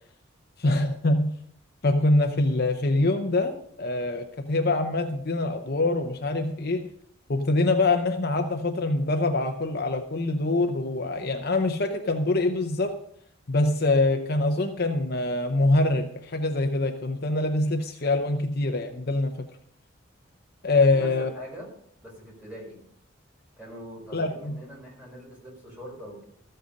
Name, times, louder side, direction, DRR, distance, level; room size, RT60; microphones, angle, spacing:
voice 1, 0.6-1.3 1.8-6.9 7.3-13.0 13.5-19.5 20.6-21.3 24.1-24.6, left 2 dB, 50° left, 5 dB, 0.8 m, -24 dB
voice 2, 20.7-21.7 22.0-22.8 23.6-26.2, equal, 5° right, -3 dB, 4.7 m, -43 dB
14.0 x 7.8 x 5.2 m, 0.69 s
head